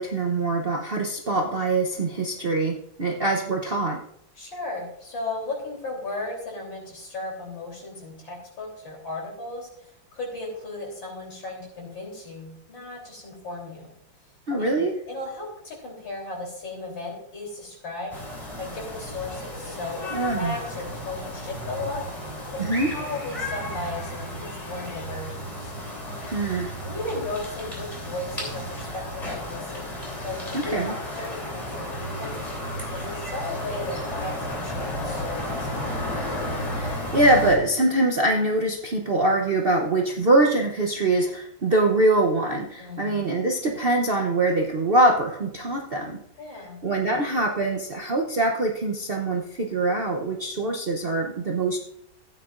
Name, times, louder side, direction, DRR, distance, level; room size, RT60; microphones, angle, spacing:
voice 1, 0.0-4.0 14.5-15.0 20.1-20.5 22.6-22.9 26.2-26.7 30.5-30.9 36.7-46.2 46.8-51.8, right 2 dB, 50° right, 1 dB, 0.7 m, -23 dB
voice 2, 4.4-13.9 14.6-14.8 15.1-18.1 18.6-22.0 22.5-22.6 22.9-25.7 26.8-30.0 30.2-32.4 32.9-36.1 42.8-43.2 46.4-46.8, left 2 dB, 80° left, -1 dB, 4.2 m, -35 dB
sound 1, 18.1-37.6, left 1 dB, 20° left, 3.2 m, -33 dB
15.5 x 9.0 x 2.5 m, 0.75 s
omnidirectional pair, 2.1 m